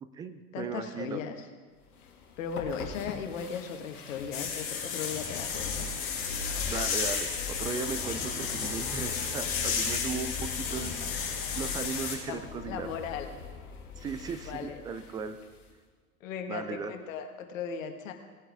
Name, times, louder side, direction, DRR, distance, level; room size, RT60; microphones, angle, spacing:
voice 1, 0.0-1.2 6.6-12.9 14.0-15.4 16.5-16.9, right 5 dB, 10° right, 10 dB, 0.3 m, -37 dB
voice 2, 0.5-1.4 2.4-5.9 12.3-12.4 12.7-13.3 14.5-14.8 16.2-18.1, left 6 dB, 60° left, 5 dB, 1.7 m, -37 dB
sound 1, 1.8-15.7, left 5 dB, 75° left, 1.8 m, -42 dB
sound 2, 4.3-12.2, left 6 dB, 30° left, 3.9 m, -33 dB
18.5 x 8.6 x 3.5 m, 1.5 s
figure-of-eight pair, 95°, 44 cm